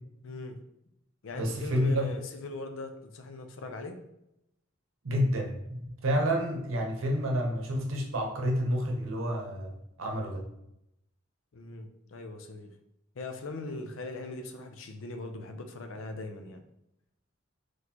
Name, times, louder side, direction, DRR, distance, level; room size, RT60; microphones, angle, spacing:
voice 1, 0.2-0.6 1.2-4.0 11.5-12.8 13.2-16.6, left 2 dB, 75° left, 7 dB, 0.5 m, -40 dB
voice 2, 1.3-2.1 5.0-9.7 10.0-10.4, equal, 80° right, 2 dB, 0.8 m, -29 dB
4.1 x 3.1 x 2.8 m, 0.84 s
head